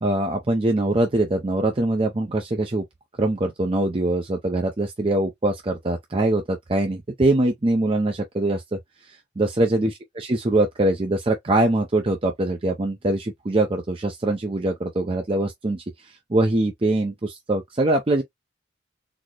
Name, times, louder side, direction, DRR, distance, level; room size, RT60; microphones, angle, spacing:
voice 1, 0.0-2.8 3.2-18.2, right 2 dB, 30° right, 0.5 m, -23 dB
4.1 x 2.0 x 3.0 m
head